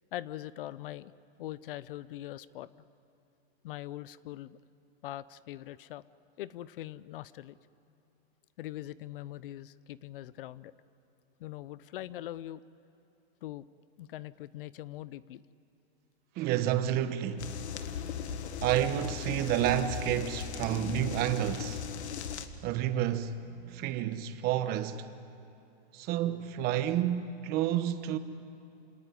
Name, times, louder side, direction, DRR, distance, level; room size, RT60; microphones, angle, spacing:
voice 1, 0.1-1.1 1.4-2.7 3.6-4.6 5.0-6.0 6.4-7.6 8.6-10.8 11.4-12.6 13.4-13.6 14.0-15.4, left 14 dB, 55° left, 0.7 m, -42 dB
voice 2, 16.4-17.5 18.6-21.8 22.2-22.3 22.6-25.1 25.9-28.2, right 11 dB, 30° right, 1.1 m, -30 dB
sound 1, 17.4-22.5, left 7 dB, 85° left, 1.8 m, -38 dB
27.5 x 18.5 x 9.9 m
hypercardioid pair, 150°, 33 cm